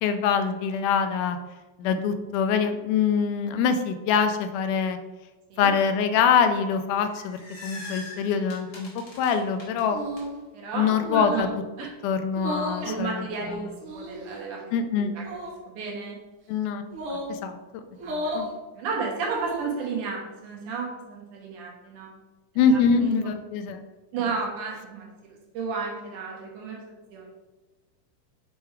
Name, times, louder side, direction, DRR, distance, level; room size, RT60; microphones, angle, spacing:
voice 1, 0.0-1.4 1.8-5.0 5.6-8.9 9.2-10.0 10.7-11.5 12.0-13.3 14.7-15.1 16.5-16.8 17.1-17.8 18.3-18.5 22.6-23.8, left 6 dB, 85° left, 8 dB, 2.1 m, -24 dB
sound 1, 6.9-10.2, left 3 dB, 55° left, 0.8 m, -42 dB
sound 2, 9.9-10.4 11.0-11.5 12.3-12.9 13.8-14.4 15.2-15.6 16.9-17.4 18.0-18.5 19.2-19.8, equal, 55° right, 1.5 m, -33 dB
voice 2, 10.5-11.5 11.8-11.9 12.8-14.6 14.9-15.2 15.7-16.2 18.0-18.3 18.7-22.1 22.7-23.3 24.1-27.3, right 5 dB, 80° right, -2 dB, 2.8 m, -33 dB
6.8 x 4.6 x 3.3 m, 1.2 s
omnidirectional pair, 3.6 m